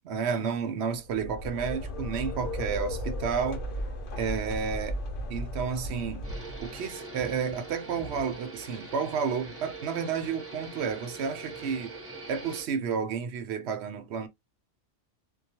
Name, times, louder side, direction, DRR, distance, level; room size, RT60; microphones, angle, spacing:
voice 1, 0.0-3.6 4.2-5.0 5.3-6.3 6.6-12.0 12.3-14.3, right 6 dB, 65° right, 0.8 m, -31 dB
sound 1, 1.0-7.0, left 1 dB, 50° left, 0.8 m, -35 dB
sound 2, 6.2-12.7, right 2 dB, 15° right, 0.6 m, -42 dB
2.3 x 2.2 x 2.7 m
omnidirectional pair, 1.3 m